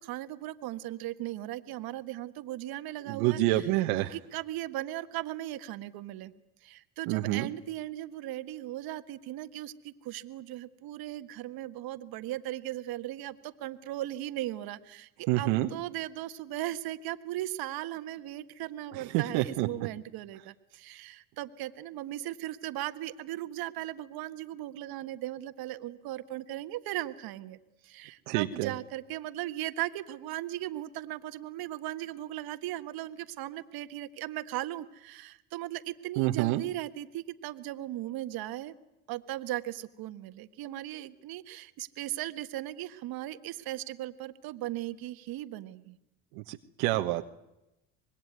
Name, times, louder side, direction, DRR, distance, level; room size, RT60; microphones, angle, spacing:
voice 1, 0.0-3.7 4.1-6.3 6.6-27.6 27.8-38.7 39.1-46.0, right 14 dB, 65° right, 10 dB, 1.6 m, -37 dB
voice 2, 3.1-4.1 7.1-7.5 15.3-15.7 18.9-19.7 28.3-28.7 36.2-36.6 46.5-47.2, right 17 dB, 80° right, 5 dB, 1.4 m, -27 dB
25.5 x 21.0 x 9.5 m, 0.90 s
supercardioid pair, 90°, 39 cm